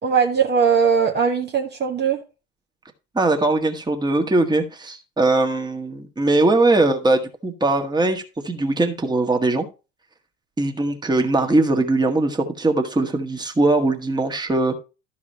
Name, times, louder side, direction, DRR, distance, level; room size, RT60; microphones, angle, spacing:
voice 1, 0.0-2.2, right 6 dB, 35° right, 1.4 m, -19 dB
voice 2, 3.1-9.7 10.6-14.7, right 2 dB, 15° right, 1.7 m, -20 dB
12.5 x 4.9 x 4.2 m
figure-of-eight pair, 65°, 31 cm